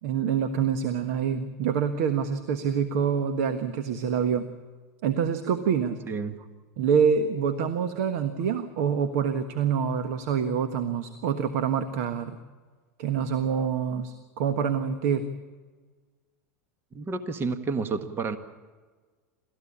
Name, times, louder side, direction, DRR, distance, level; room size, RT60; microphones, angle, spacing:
voice 1, 0.0-4.5 5.0-6.0 6.8-12.4 13.0-15.3, right 7 dB, 65° right, 9 dB, 1.4 m, -26 dB
voice 2, 6.1-6.5 16.9-18.4, right 4 dB, 25° right, 9 dB, 1.5 m, -30 dB
29.0 x 14.5 x 8.6 m, 1.4 s
hypercardioid pair, 105°, 9 cm